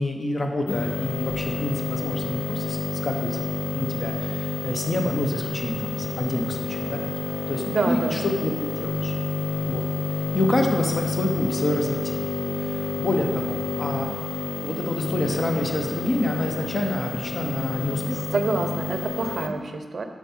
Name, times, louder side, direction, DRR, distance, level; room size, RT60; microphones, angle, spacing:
voice 1, 0.0-9.1 9.7-9.9 10.3-12.3 12.6-14.1 14.6-18.3, left 1 dB, 45° left, 2 dB, 0.8 m, -28 dB
sound 1, 0.7-19.5, left 3 dB, 80° left, 0.5 m, -29 dB
voice 2, 7.7-8.2 18.3-20.1, right 3 dB, 60° right, 7 dB, 0.5 m, -27 dB
7.2 x 4.7 x 4.3 m, 1.5 s
wide cardioid pair, 130°, 0 cm